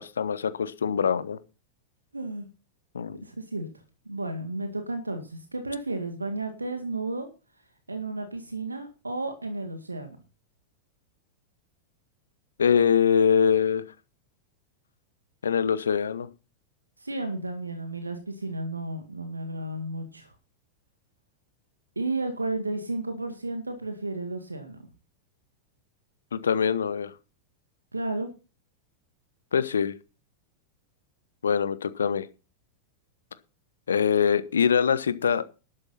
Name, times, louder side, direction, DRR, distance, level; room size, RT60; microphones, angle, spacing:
voice 1, 0.0-1.4 2.9-3.2 12.6-13.8 15.4-16.3 26.3-27.1 29.5-29.9 31.4-32.3 33.9-35.4, left 7 dB, 70° left, 15 dB, 1.0 m, -23 dB
voice 2, 2.1-2.5 3.2-3.7 4.1-7.3 7.9-10.2 17.0-20.3 22.0-24.8 27.9-28.3, right 2 dB, 80° right, 7 dB, 2.0 m, -33 dB
12.0 x 12.0 x 4.2 m, 0.31 s
figure-of-eight pair, 90°, 0 cm